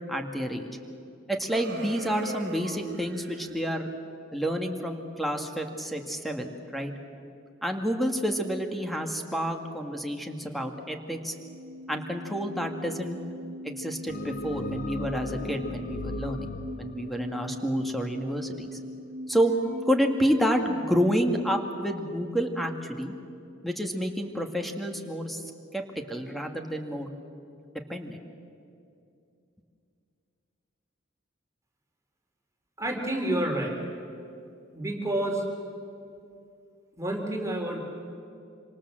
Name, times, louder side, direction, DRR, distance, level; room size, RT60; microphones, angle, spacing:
voice 1, 0.1-0.7 1.3-3.9 4.3-6.9 7.6-11.3 11.9-13.2 13.6-18.8 19.3-23.1 23.6-25.4 25.7-27.1 27.9-28.2, equal, ahead, 4 dB, 2.0 m, -29 dB
sound 1, 1.5-3.6, right 2 dB, 55° right, 2.1 m, -40 dB
sound 2, 11.2-20.8, equal, 75° right, 1.9 m, -41 dB
sound 3, 14.1-18.5, left 2 dB, 45° left, 0.6 m, -37 dB
voice 2, 32.8-33.8 34.7-35.4 37.0-37.8, right 1 dB, 15° right, 1 dB, 3.2 m, -29 dB
26.5 x 26.0 x 7.6 m, 2.6 s
head